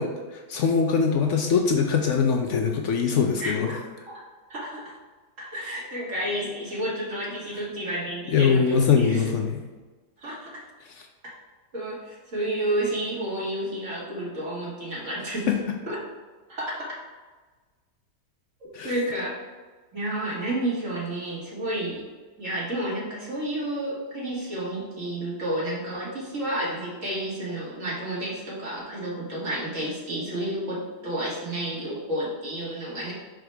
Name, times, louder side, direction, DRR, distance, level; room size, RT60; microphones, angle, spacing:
voice 1, 0.0-3.7 8.3-9.6 15.5-15.6 18.7-18.9, left 6 dB, 65° left, 3 dB, 0.7 m, -22 dB
voice 2, 3.4-3.8 4.1-4.2 4.5-5.0 5.4-9.3 10.2-10.5 11.2-11.3 11.7-15.5 15.9-16.0 16.5-16.9 18.8-19.4 19.9-22.0 22.4-33.1, right 1 dB, 50° right, -6 dB, 2.2 m, -31 dB
6.2 x 5.0 x 3.3 m, 1.3 s
omnidirectional pair, 1.8 m